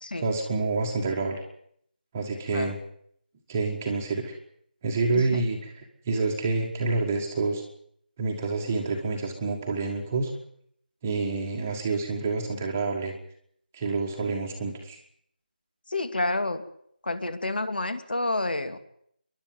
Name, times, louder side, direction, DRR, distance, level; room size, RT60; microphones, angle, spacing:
voice 1, 0.2-1.4 2.1-2.8 3.5-4.4 4.8-7.6 8.2-10.3 11.0-13.1 13.7-15.0, right 3 dB, 10° right, 1 dB, 1.6 m, -28 dB
voice 2, 15.9-16.6 17.0-18.8, left 2 dB, 65° left, 9 dB, 2.7 m, -29 dB
28.0 x 11.5 x 9.3 m, 0.68 s
figure-of-eight pair, 175°, 5 cm